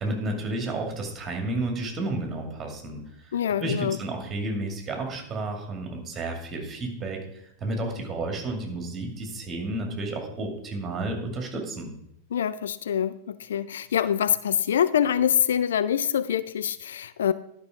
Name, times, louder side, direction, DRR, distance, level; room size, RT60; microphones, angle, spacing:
voice 1, 0.0-3.3 3.6-7.2 7.6-11.9, right 2 dB, 20° right, 3 dB, 2.3 m, -31 dB
voice 2, 3.3-4.0 12.3-17.3, left 9 dB, 65° left, 15 dB, 0.3 m, -25 dB
11.0 x 5.5 x 4.9 m, 0.79 s
figure-of-eight pair, 90°, 0 cm